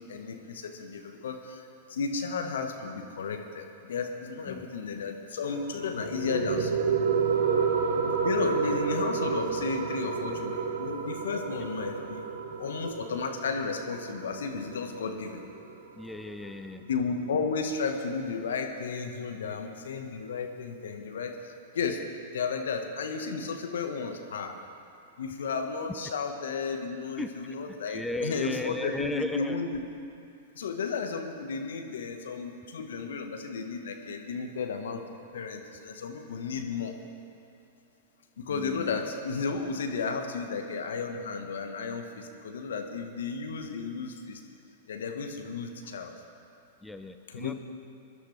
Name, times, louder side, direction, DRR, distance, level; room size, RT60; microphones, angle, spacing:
voice 1, 0.0-6.8 8.2-12.2 12.6-15.4 16.9-22.0 22.3-24.6 25.2-29.8 30.5-35.0 35.3-37.0 38.4-44.4 44.9-46.1 47.3-47.5, left 5 dB, 70° left, 5 dB, 1.3 m, -33 dB
sound 1, 5.5-16.5, right 5 dB, 65° right, 1.5 m, -30 dB
voice 2, 16.0-16.8 27.2-27.3 27.9-29.6 38.5-38.9 46.8-47.5, left 1 dB, 5° left, 8 dB, 0.5 m, -35 dB
22.0 x 11.5 x 3.4 m, 2.6 s
hypercardioid pair, 105°, 0 cm